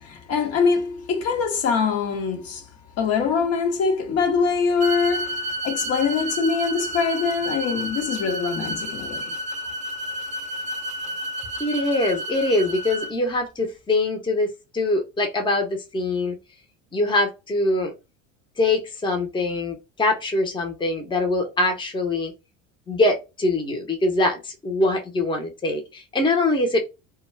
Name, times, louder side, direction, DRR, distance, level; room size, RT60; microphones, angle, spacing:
voice 1, 0.0-2.7 3.0-9.3, left 5 dB, 55° left, 0.9 m, -23 dB
sound 1, 4.8-13.1, equal, 25° right, 0.6 m, -31 dB
voice 2, 11.6-14.5 14.7-16.4 16.9-17.9 18.6-22.3 22.9-26.8, left 2 dB, 15° left, 0.8 m, -23 dB
2.3 x 2.2 x 3.2 m
supercardioid pair, 85°, 31 cm